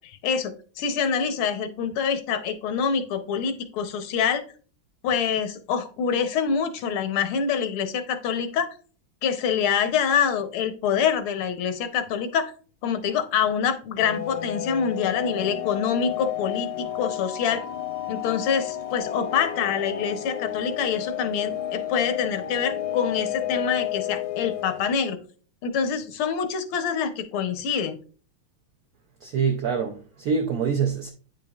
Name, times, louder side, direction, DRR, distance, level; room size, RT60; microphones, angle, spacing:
voice 1, 0.0-4.4 5.0-8.7 9.2-12.5 12.8-17.7 18.1-25.2 25.6-28.0, left 7 dB, 80° left, 1.6 m, -26 dB
sound 1, 14.0-24.9, left 11 dB, 65° left, 1.0 m, -31 dB
voice 2, 29.2-31.1, right 6 dB, 75° right, 0.8 m, -25 dB
9.0 x 5.1 x 2.3 m
omnidirectional pair, 2.3 m